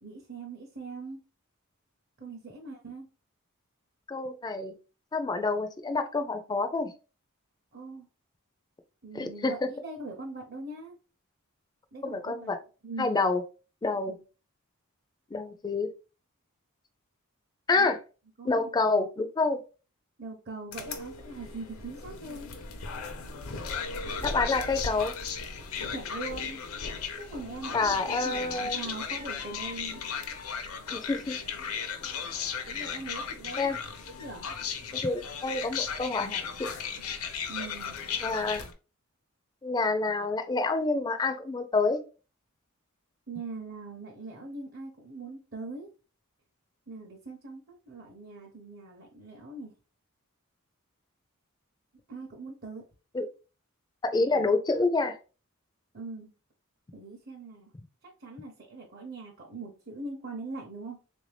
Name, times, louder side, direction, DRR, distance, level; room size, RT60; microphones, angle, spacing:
voice 1, 0.0-1.2 2.2-3.1 7.7-8.1 9.0-10.9 11.9-12.5 12.8-13.1 17.8-17.9 18.4-18.7 20.2-22.5 25.9-26.6 27.2-30.0 32.7-33.8 34.2-34.5 37.5-38.0 43.3-45.9 46.9-49.7 52.1-52.8 55.9-56.3 56.9-57.7 58.0-61.0, right 3 dB, 45° right, 0 dB, 0.7 m, -41 dB
voice 2, 4.1-4.7 5.1-6.9 9.1-9.7 12.0-12.6 13.0-13.4 13.8-14.2 15.3-15.9 17.7-18.0 18.4-19.6 24.2-25.1 27.7-28.8 30.9-31.4 32.7-33.0 33.6-33.8 34.9-36.7 38.2-38.6 39.6-42.0 53.1-53.3 54.1-55.2, left 3 dB, 20° left, 8 dB, 0.3 m, -28 dB
sound 1, 20.7-38.7, left 6 dB, 75° left, 0.6 m, -36 dB
3.5 x 2.6 x 3.2 m, 0.33 s
head